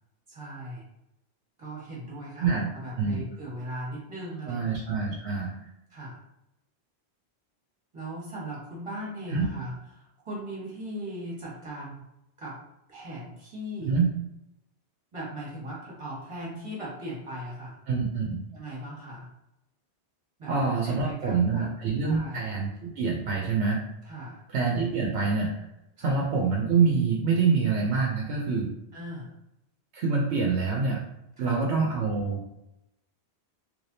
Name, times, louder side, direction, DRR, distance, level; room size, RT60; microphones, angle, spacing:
voice 1, 0.3-0.8 1.6-4.8 5.9-6.2 7.9-12.0 12.4-12.6 12.9-13.9 15.1-17.8 18.5-19.3 20.4-20.5 20.8-21.7 22.0-22.4 24.0-24.4 26.0-26.1 28.9-29.3 31.4-31.6, right 1 dB, 30° right, -6 dB, 1.4 m, -38 dB
voice 2, 2.4-2.7 3.0-3.2 4.5-5.6 9.3-9.5 13.8-14.1 17.9-18.4 20.5-23.8 24.5-25.5 26.0-28.8 29.9-31.0 31.4-32.4, right 4 dB, 80° right, -1 dB, 0.9 m, -26 dB
3.3 x 3.2 x 2.7 m, 0.86 s
omnidirectional pair, 1.1 m